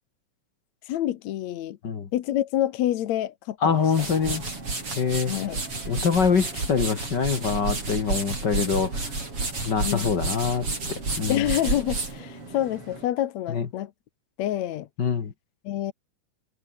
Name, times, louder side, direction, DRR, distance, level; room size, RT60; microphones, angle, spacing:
voice 1, 0.8-1.8 2.1-3.8 5.2-5.6 9.8-10.2 11.3-13.9 14.4-14.9 15.6-15.9, left 12 dB, 65° left, 2.1 m, -27 dB
voice 2, 3.6-4.5 5.0-5.3 5.9-9.1 9.6-11.4 13.5-13.7 15.0-15.3, left 6 dB, 40° left, 1.7 m, -25 dB
sound 1, 3.7-13.1, right 3 dB, 45° right, 7.7 m, -31 dB
omnidirectional pair, 3.7 m